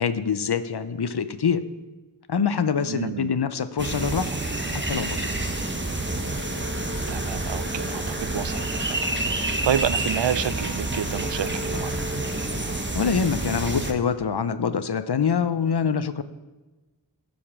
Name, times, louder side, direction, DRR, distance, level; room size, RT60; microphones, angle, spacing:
voice 1, 0.0-1.6 2.3-4.4 4.7-5.3 12.9-16.2, left 6 dB, 60° left, 13 dB, 0.7 m, -25 dB
voice 2, 2.8-3.3 7.1-11.9, right 9 dB, 75° right, 16 dB, 0.5 m, -29 dB
sound 1, 3.8-13.9, right 2 dB, 25° right, 1.1 m, -28 dB
14.5 x 5.3 x 6.0 m, 1.2 s
wide cardioid pair, 40°, 44 cm